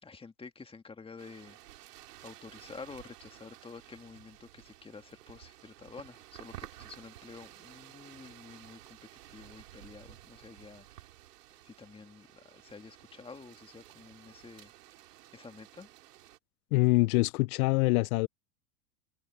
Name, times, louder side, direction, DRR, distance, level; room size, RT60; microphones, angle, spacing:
voice 1, 0.0-1.6 2.2-9.0 9.3-11.1 11.6-14.7 15.3-15.9, left 4 dB, 10° left, 1.9 m, -49 dB
sound 1, 1.2-16.4, right 15 dB, 85° right, 4.3 m, -53 dB
voice 2, 16.7-18.3, left 22 dB, 70° left, 0.6 m, -25 dB
supercardioid pair, 125°, 46 cm